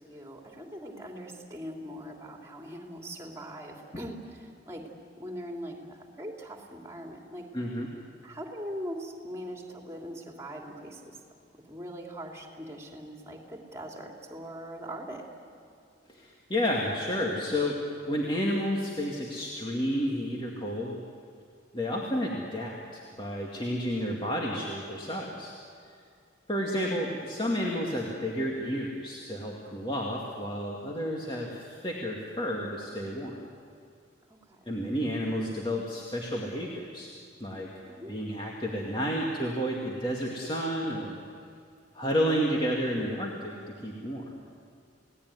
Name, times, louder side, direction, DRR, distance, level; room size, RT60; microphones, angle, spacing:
voice 1, 0.0-4.9 5.1-7.5 8.2-11.2 11.5-15.2 30.9-31.3 34.5-34.6 37.9-38.1, equal, 15° right, 1 dB, 3.1 m, -41 dB
voice 2, 7.5-7.9 16.1-21.0 21.7-25.5 25.9-26.0 26.5-33.5 34.7-37.1 37.4-37.7 38.1-41.2 41.9-44.3, equal, 25° left, -2 dB, 2.3 m, -31 dB
29.5 x 18.5 x 9.7 m, 2.4 s
head